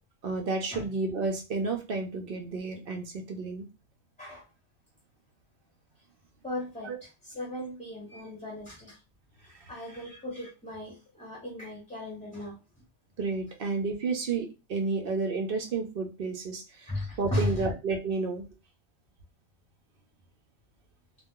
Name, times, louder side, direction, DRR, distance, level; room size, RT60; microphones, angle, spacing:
voice 1, 0.2-3.7 6.8-7.0 9.6-9.7 13.2-16.9 17.2-18.4, right 4 dB, 60° right, 3 dB, 0.6 m, -31 dB
voice 2, 6.4-9.0 9.4-12.6 16.9-17.7, left 1 dB, 5° left, -5 dB, 0.6 m, -36 dB
2.3 x 2.2 x 3.6 m, 0.29 s
omnidirectional pair, 1.4 m